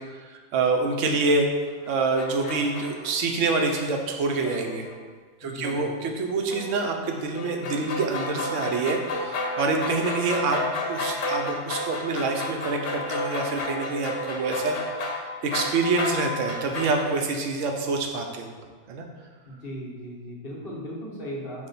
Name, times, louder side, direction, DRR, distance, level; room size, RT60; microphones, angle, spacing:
voice 1, 0.1-1.5 1.9-4.9 5.4-14.8 15.1-18.5 18.9-19.0, right 3 dB, 85° right, 3 dB, 1.0 m, -26 dB
sound 1, 1.7-3.2 4.1-4.2 4.4-4.9 5.6-6.0 6.5-17.0, left 2 dB, 90° left, 1.0 m, -32 dB
voice 2, 5.4-5.9 19.5-21.7, equal, 50° left, -5 dB, 1.1 m, -37 dB
6.1 x 2.1 x 3.9 m, 1.5 s
omnidirectional pair, 1.2 m